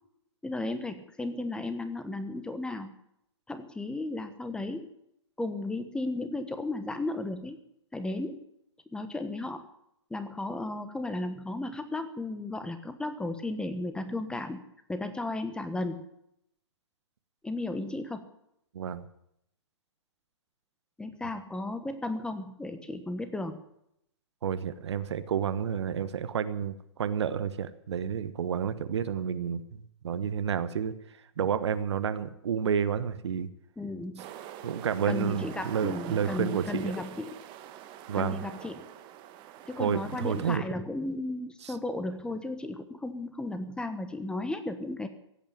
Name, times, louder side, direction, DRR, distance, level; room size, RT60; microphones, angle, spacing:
voice 1, 0.4-2.9 3.5-4.9 5.4-7.6 7.9-8.4 8.9-9.7 10.1-14.6 14.9-16.0 17.4-18.3 21.0-23.6 33.8-34.3 35.1-37.3 38.1-38.9 39.7-45.1, left 2 dB, 5° left, 9 dB, 1.2 m, -34 dB
voice 2, 18.7-19.0 24.4-30.9 31.4-33.5 34.6-36.9 38.1-38.4 39.8-40.6 41.6-41.7, right 7 dB, 65° right, 13 dB, 1.2 m, -30 dB
sound 1, 34.2-40.6, right 11 dB, 30° right, 1.4 m, -45 dB
16.5 x 8.9 x 9.0 m, 0.76 s
hypercardioid pair, 120°, 15 cm